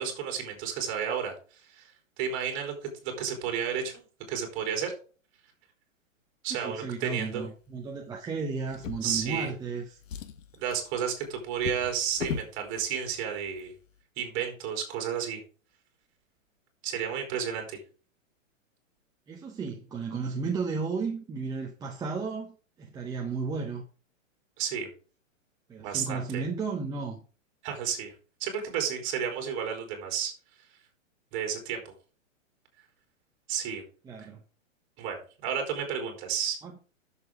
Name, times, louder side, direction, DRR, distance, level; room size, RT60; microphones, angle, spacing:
voice 1, 0.0-1.4 1.7-1.9 2.2-2.7 3.0-4.9 6.4-7.5 9.0-9.5 10.6-13.7 14.2-15.4 16.8-17.8 24.6-24.9 25.8-26.4 27.6-28.1 28.4-30.3 31.3-31.9 33.5-33.8 34.2-34.3 35.0-36.6, right 8 dB, 30° right, 3.9 m, -32 dB
voice 2, 6.6-10.0 19.3-23.9 25.7-27.2 34.0-34.4 36.6-36.7, right 4 dB, 10° right, 0.9 m, -34 dB
Drawer open or close, 8.7-9.7 10.0-12.6 13.5-13.6 14.0-14.1, left 7 dB, 70° left, 1.6 m, -39 dB
10.5 x 7.1 x 3.8 m
hypercardioid pair, 150°, 39 cm